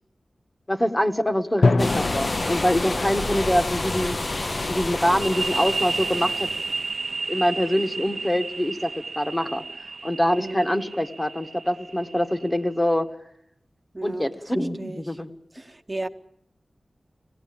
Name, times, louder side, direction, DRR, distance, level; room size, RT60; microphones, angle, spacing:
voice 1, 0.7-4.2 4.7-6.5 7.3-8.9 9.2-9.6 10.0-13.1 14.0-15.3, equal, 15° left, 6 dB, 1.4 m, -24 dB
Drum, 1.6-3.5, left 3 dB, 75° left, 0.9 m, -25 dB
sound 1, 1.8-6.8, left 2 dB, 40° left, 0.9 m, -29 dB
sound 2, 5.2-12.7, right 3 dB, 60° right, 0.9 m, -32 dB
voice 2, 10.4-10.9 13.9-15.2 15.5-16.1, right 2 dB, 20° right, 5 dB, 1.0 m, -35 dB
25.0 x 18.5 x 8.8 m, 0.75 s
wide cardioid pair, 100°, 0 cm